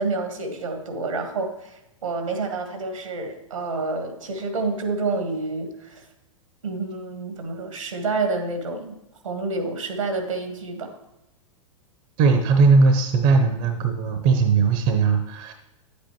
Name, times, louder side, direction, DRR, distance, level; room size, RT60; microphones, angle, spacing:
voice 1, 0.0-6.0 6.6-9.0 9.2-11.0, right 3 dB, 75° right, 6 dB, 1.5 m, -28 dB
voice 2, 12.2-15.5, right 4 dB, 40° right, 6 dB, 0.8 m, -19 dB
9.8 x 8.2 x 3.0 m, 0.94 s
figure-of-eight pair, 100°, 17 cm